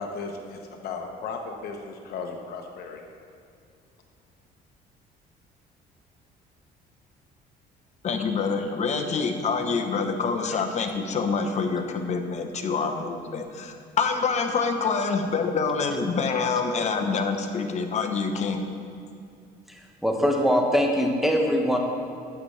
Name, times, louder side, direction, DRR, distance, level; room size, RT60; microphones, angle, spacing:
voice 1, 0.0-3.1, left 4 dB, 65° left, 2 dB, 1.0 m, -35 dB
voice 2, 8.0-18.6, left 4 dB, 45° left, 5 dB, 1.0 m, -26 dB
voice 3, 20.0-21.8, equal, ahead, 1 dB, 1.3 m, -22 dB
12.0 x 8.4 x 3.3 m, 2.4 s
cardioid pair, 110°, 17 cm